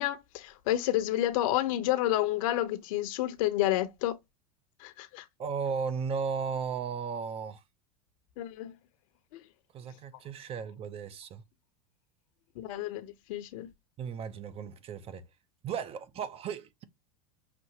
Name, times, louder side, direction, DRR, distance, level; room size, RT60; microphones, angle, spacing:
voice 1, 0.0-4.2 4.8-5.2 8.4-8.7 9.3-9.4 12.6-13.7, left 14 dB, 70° left, 0.9 m, -30 dB
voice 2, 5.4-7.6 9.7-11.4 14.0-15.3 15.6-16.8, right 6 dB, 30° right, 0.6 m, -35 dB
6.1 x 2.6 x 2.8 m
supercardioid pair, 115°, 18 cm